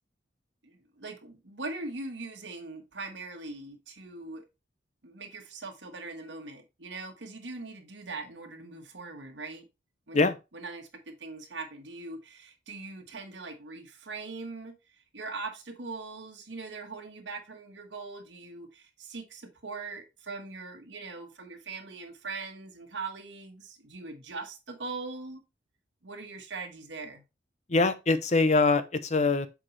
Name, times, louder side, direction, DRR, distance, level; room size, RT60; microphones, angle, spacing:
voice 1, 0.6-4.4 5.0-9.7 10.1-10.3 10.5-14.7 15.1-25.4 26.0-27.2, right 3 dB, 80° right, 1.4 m, -41 dB
voice 2, 27.7-29.5, left 3 dB, 40° left, 0.7 m, -23 dB
7.6 x 4.7 x 3.2 m
head